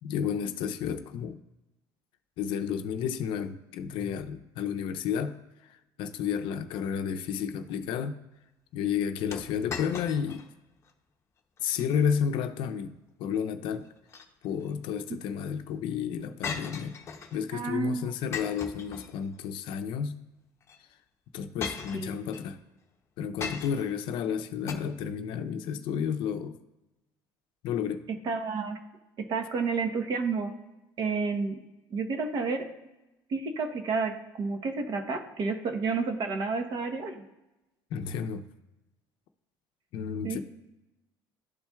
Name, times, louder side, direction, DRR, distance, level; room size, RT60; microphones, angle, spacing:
voice 1, 0.0-1.4 2.4-5.3 6.0-8.2 8.7-10.4 11.6-12.9 13.2-13.9 14.4-17.0 17.3-20.2 21.3-22.6 23.2-26.6 27.6-28.0 37.9-38.4 39.9-40.4, left 7 dB, 65° left, 8 dB, 0.5 m, -31 dB
sound 1, 9.3-10.5 10.9-11.0 11.6-11.9 13.8-14.7 16.4-17.4 18.3-19.5 20.6-20.8 21.6-22.5 23.4-24.0 24.7-24.8, left 5 dB, 30° left, 0.7 m, -38 dB
voice 2, 17.5-18.1 21.9-22.2 28.1-28.8 29.2-30.5 31.0-31.6 31.9-32.7 33.3-37.2 40.2-40.4, right 4 dB, 50° right, 6 dB, 1.0 m, -30 dB
12.5 x 4.3 x 2.3 m, 0.99 s
cardioid pair, 125°, 9 cm